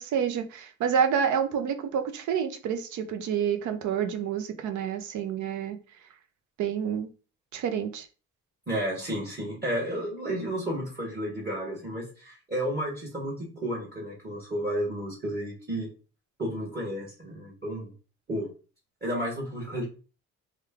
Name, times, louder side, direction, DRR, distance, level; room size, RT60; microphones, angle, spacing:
voice 1, 0.0-5.8 6.6-7.1 7.5-8.1, right 8 dB, 75° right, 0.6 m, -28 dB
voice 2, 8.7-15.9 16.4-17.9 18.3-18.5 19.0-19.8, equal, 30° right, 1.3 m, -32 dB
3.0 x 2.3 x 3.5 m
cardioid pair, 90°, 30 cm